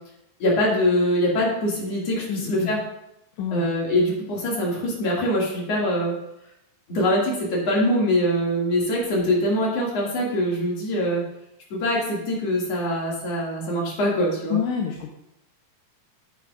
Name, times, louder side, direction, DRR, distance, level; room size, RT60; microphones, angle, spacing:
voice 1, 0.4-2.8 3.5-6.2 6.9-11.2 11.7-14.6, equal, 55° left, -3 dB, 3.1 m, -23 dB
voice 2, 2.3-2.7 3.4-3.7 14.5-15.1, left 7 dB, 75° left, 1 dB, 2.0 m, -27 dB
10.0 x 8.3 x 2.4 m, 0.81 s
omnidirectional pair, 3.6 m